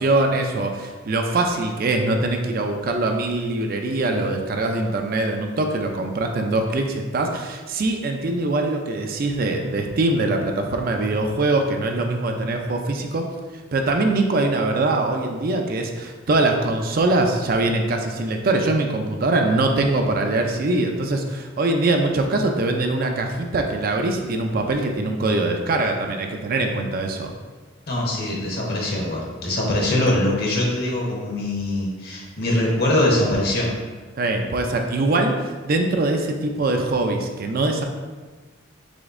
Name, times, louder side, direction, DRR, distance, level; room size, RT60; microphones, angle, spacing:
voice 1, 0.0-13.3 13.7-27.3 34.2-37.8, right 2 dB, 50° right, 3 dB, 0.4 m, -22 dB
voice 2, 27.9-33.7, left 1 dB, 50° left, -2 dB, 1.0 m, -22 dB
5.0 x 3.5 x 2.5 m, 1.4 s
head